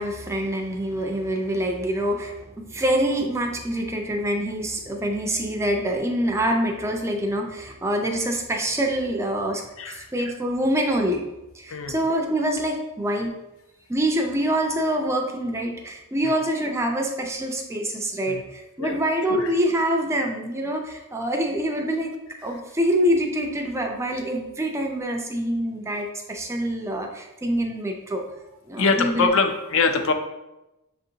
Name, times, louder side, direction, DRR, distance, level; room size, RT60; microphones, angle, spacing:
voice 1, 0.0-11.3 11.5-13.3 13.9-22.1 22.4-28.3 28.7-29.3, right 1 dB, 10° right, 3 dB, 0.4 m, -25 dB
voice 2, 28.8-30.1, left 4 dB, 60° left, 6 dB, 0.5 m, -23 dB
6.5 x 2.6 x 2.8 m, 0.97 s
head